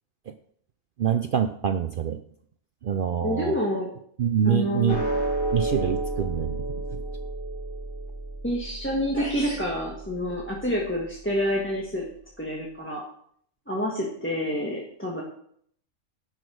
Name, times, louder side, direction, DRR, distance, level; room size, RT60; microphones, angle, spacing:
voice 1, 1.0-2.2 2.8-3.5 4.2-5.0 5.5-6.6, right 8 dB, 65° right, 9 dB, 0.5 m, -25 dB
voice 2, 3.2-3.9 4.4-5.0 8.4-12.0 12.4-13.0 13.7-15.2, equal, 10° left, -2 dB, 1.5 m, -28 dB
sound 1, 4.9-11.4, right 2 dB, 80° left, 2.6 m, -32 dB
sound 2, 8.8-8.9 9.1-9.7, equal, 40° right, 4.3 m, -37 dB
11.0 x 5.7 x 6.3 m, 0.64 s
omnidirectional pair, 1.5 m